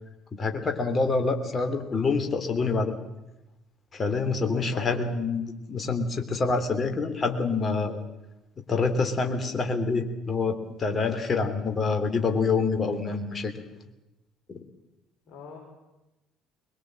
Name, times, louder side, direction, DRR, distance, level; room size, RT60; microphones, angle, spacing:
voice 1, 0.3-2.9 3.9-8.0 8.7-13.5 14.5-14.6, left 4 dB, 30° left, 6 dB, 3.2 m, -26 dB
voice 2, 4.5-5.0 15.3-15.6, left 6 dB, 50° left, -2 dB, 5.2 m, -41 dB
22.0 x 21.5 x 7.7 m, 0.98 s
figure-of-eight pair, 50°, 0 cm